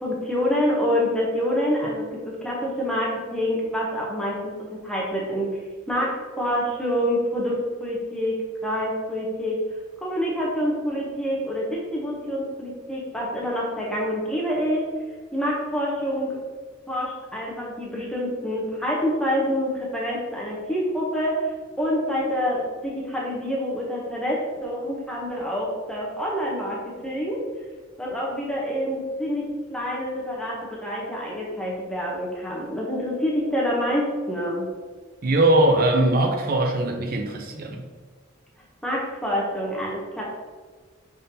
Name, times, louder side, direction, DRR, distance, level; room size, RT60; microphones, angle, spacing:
voice 1, 0.0-5.5 5.9-9.7 10.0-14.8 15.3-16.4 16.9-21.5 21.8-27.4 28.0-34.7 38.8-40.2, equal, 5° left, -4 dB, 0.7 m, -27 dB
voice 2, 35.2-37.8, right 1 dB, 50° right, 2 dB, 0.5 m, -21 dB
5.3 x 3.7 x 2.7 m, 1.5 s
head